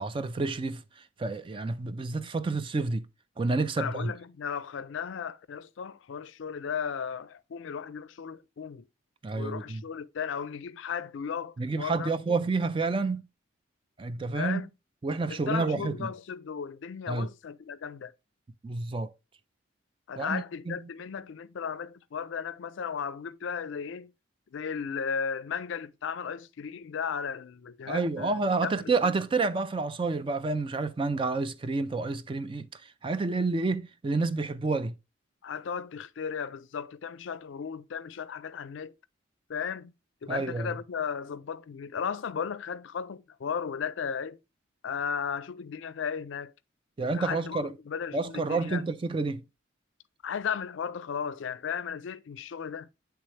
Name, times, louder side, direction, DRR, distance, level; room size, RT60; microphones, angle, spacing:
voice 1, 0.0-3.1 3.4-4.1 9.2-9.8 11.6-13.2 14.0-14.6 15.0-16.1 17.1-17.3 18.6-19.1 20.2-20.8 27.9-35.0 40.3-40.7 47.0-47.7 48.1-49.4, right 3 dB, 25° right, 0.3 m, -29 dB
voice 2, 3.8-8.8 9.3-12.4 14.3-14.7 15.3-18.1 20.1-24.1 24.5-29.1 35.4-38.9 39.5-39.9 40.2-44.4 44.8-46.5 47.0-48.8 50.2-52.9, left 6 dB, 70° left, 0.4 m, -35 dB
8.8 x 3.4 x 3.2 m
head